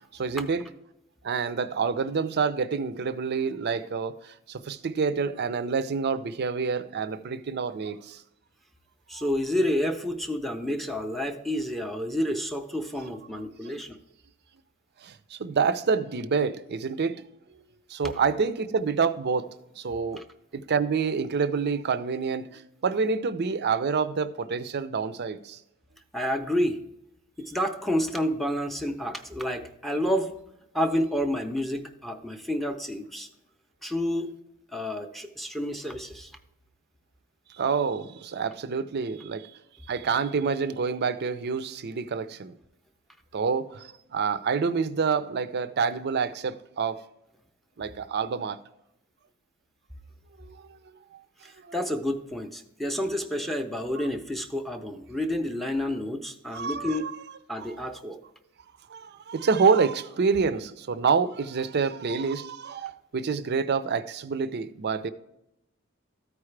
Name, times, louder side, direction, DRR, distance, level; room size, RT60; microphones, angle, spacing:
voice 1, 0.2-0.7 1.2-8.2 9.1-9.2 15.0-17.2 17.9-19.5 19.8-20.2 20.5-25.6 37.6-39.5 39.9-42.5 43.3-47.0 47.8-48.6 50.4-50.6 51.7-51.8 56.5-57.1 57.6-57.7 58.9-65.1, right 5 dB, 50° right, 0.5 m, -27 dB
voice 2, 9.1-14.0 20.1-20.2 26.1-26.8 27.4-30.3 30.7-33.3 33.8-34.3 34.7-36.3 51.4-57.1 57.5-58.2, equal, ahead, 0.6 m, -29 dB
13.5 x 4.8 x 3.3 m
head